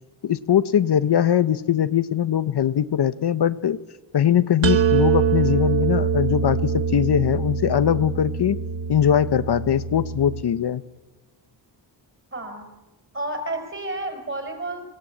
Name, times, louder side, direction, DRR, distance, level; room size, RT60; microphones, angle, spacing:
voice 1, 0.2-3.8 4.1-8.6 8.9-10.8, left 9 dB, 60° left, 13 dB, 0.9 m, -21 dB
sound 1, 4.6-10.4, right 6 dB, 80° right, 1.3 m, -24 dB
voice 2, 12.3-12.7 13.1-14.8, right 2 dB, 25° right, 5 dB, 5.4 m, -30 dB
27.5 x 17.5 x 8.7 m, 1.1 s
wide cardioid pair, 170°, 45 cm